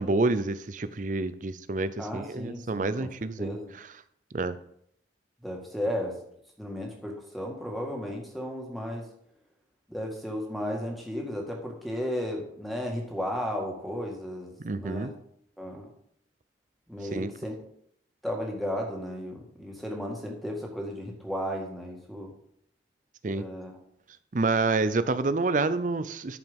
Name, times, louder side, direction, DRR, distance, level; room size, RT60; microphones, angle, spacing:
voice 1, 0.0-3.5 4.3-4.6 14.6-15.1 17.1-17.3 23.2-23.4 24.3-26.4, right 3 dB, 45° right, 13 dB, 0.5 m, -28 dB
voice 2, 2.0-3.1 3.4-3.7 5.4-6.2 6.6-9.0 9.9-15.1 15.6-15.9 16.9-17.6 18.2-22.3 23.3-23.7, equal, ahead, 0 dB, 1.8 m, -34 dB
11.0 x 5.1 x 5.3 m, 0.70 s
head